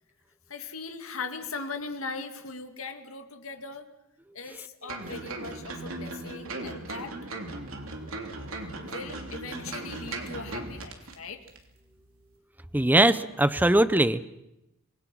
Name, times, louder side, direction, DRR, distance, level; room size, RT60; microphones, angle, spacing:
voice 1, 0.5-3.9 4.3-7.2 8.8-11.5, left 4 dB, 70° left, 7 dB, 2.2 m, -39 dB
sound 1, 4.9-11.2 11.5-11.6, right 2 dB, 70° right, 3.2 m, -37 dB
voice 2, 12.7-14.3, right 1 dB, 10° right, 13 dB, 0.7 m, -21 dB
26.0 x 20.5 x 6.3 m, 0.87 s
head